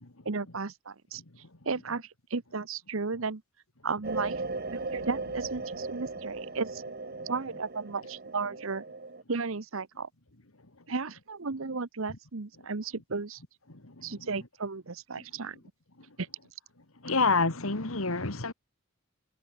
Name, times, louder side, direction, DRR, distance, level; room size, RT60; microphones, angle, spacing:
voice 1, 0.2-1.2 1.6-3.4 3.8-4.4 4.7-6.8 7.3-8.8 9.3-10.1 10.9-13.4 14.0-15.6 16.2-16.3, right 4 dB, 65° right, 1.0 m, -34 dB
sound 1, 4.0-9.2, right 3 dB, 45° right, 1.6 m, -37 dB
voice 2, 13.7-14.3 15.2-15.3 17.0-18.5, left 3 dB, 70° left, 2.4 m, -29 dB
head